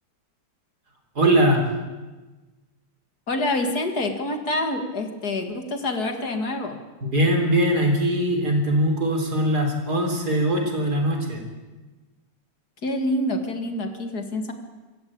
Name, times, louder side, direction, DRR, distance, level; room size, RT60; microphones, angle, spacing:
voice 1, 1.2-1.6 7.0-11.4, right 1 dB, 60° right, 3 dB, 4.2 m, -21 dB
voice 2, 3.3-6.8 12.8-14.5, left 1 dB, 60° left, 6 dB, 2.6 m, -26 dB
25.5 x 14.5 x 8.8 m, 1.2 s
omnidirectional pair, 1.9 m